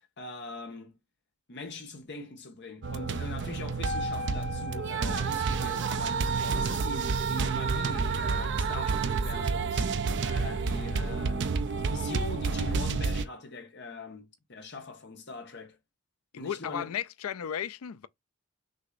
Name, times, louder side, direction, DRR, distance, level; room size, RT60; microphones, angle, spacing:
voice 1, 0.2-0.9 1.5-11.4 11.8-15.8 16.4-16.9, left 3 dB, 50° left, 1.3 m, -42 dB
sound 1, 2.8-13.2, right 4 dB, 55° right, 0.5 m, -29 dB
voice 2, 16.3-18.1, left 9 dB, 75° left, 0.4 m, -34 dB
6.3 x 2.9 x 2.6 m
head